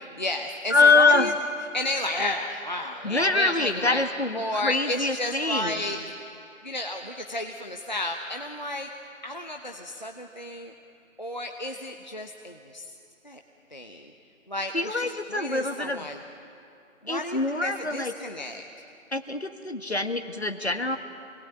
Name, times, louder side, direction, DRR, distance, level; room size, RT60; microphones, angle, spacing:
voice 1, 0.0-1.3 1.7-4.0 4.3-6.0 6.6-8.9 9.2-10.7 11.2-12.9 13.2-13.4 13.7-14.1 14.5-16.2 17.0-18.6, left 1 dB, 35° left, 2 dB, 1.0 m, -32 dB
voice 2, 0.7-1.4 3.0-5.8 14.7-16.1 17.1-18.1 19.1-21.0, left 3 dB, 50° left, 7 dB, 1.8 m, -24 dB
27.5 x 20.5 x 9.1 m, 2.6 s
figure-of-eight pair, 165°, 41 cm